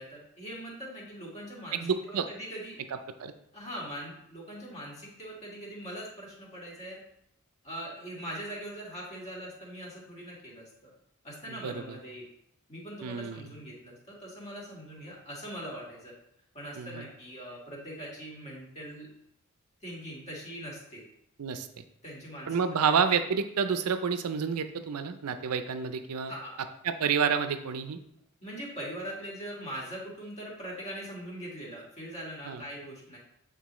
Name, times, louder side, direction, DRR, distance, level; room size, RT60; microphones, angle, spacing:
voice 1, 0.0-2.8 3.5-7.0 7.6-10.9 11.2-12.3 12.7-16.1 16.5-19.1 19.8-21.0 22.0-22.9 26.3-26.6 28.4-33.2, equal, 30° left, -4 dB, 1.9 m, -41 dB
voice 2, 1.7-2.3 3.2-3.3 11.5-12.0 13.0-13.5 16.8-17.1 21.4-21.8 22.5-26.3 26.8-28.0 32.4-32.6, right 6 dB, 85° right, 9 dB, 0.5 m, -29 dB
8.2 x 4.0 x 3.1 m, 0.77 s
head